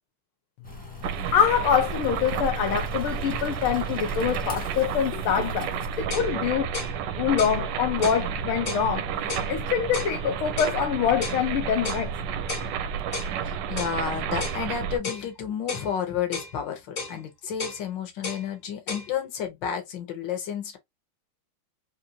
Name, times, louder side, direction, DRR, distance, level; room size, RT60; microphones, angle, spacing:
sound 1, 0.6-6.0, equal, 5° left, 0.8 m, -39 dB
sound 2, 1.0-15.0, right 8 dB, 75° right, 1.0 m, -31 dB
voice 1, 1.3-5.7 6.0-6.7 7.2-9.1 9.5-12.1, left 8 dB, 80° left, 1.5 m, -25 dB
sound 3, 5.7-5.8 6.1-6.3 6.7-7.0 7.4-7.6 8.0-8.2 8.7-8.9 9.3-9.5 9.9-10.1 10.6-10.8 11.2-11.4 11.8-12.1 12.5-12.7 13.1-13.3 13.8-14.0 14.4-14.6 15.0-15.3 15.7-15.9 16.3-16.5 17.0-17.2 17.6-17.8 18.2-18.4 18.9-19.1, left 4 dB, 40° left, 1.6 m, -34 dB
voice 2, 13.4-20.8, left 8 dB, 60° left, 1.7 m, -31 dB
4.4 x 2.7 x 2.7 m
omnidirectional pair, 2.3 m